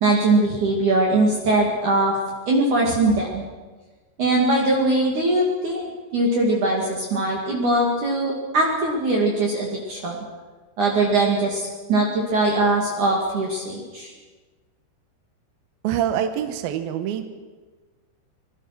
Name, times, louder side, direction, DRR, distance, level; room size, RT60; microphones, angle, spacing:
voice 1, 0.0-2.2 2.5-3.4 4.2-10.2 10.8-11.6 11.9-14.1, right 2 dB, 45° right, -2 dB, 3.5 m, -21 dB
voice 2, 15.8-17.3, right 10 dB, 75° right, 8 dB, 2.3 m, -25 dB
25.0 x 21.5 x 6.1 m, 1.3 s
omnidirectional pair, 5.7 m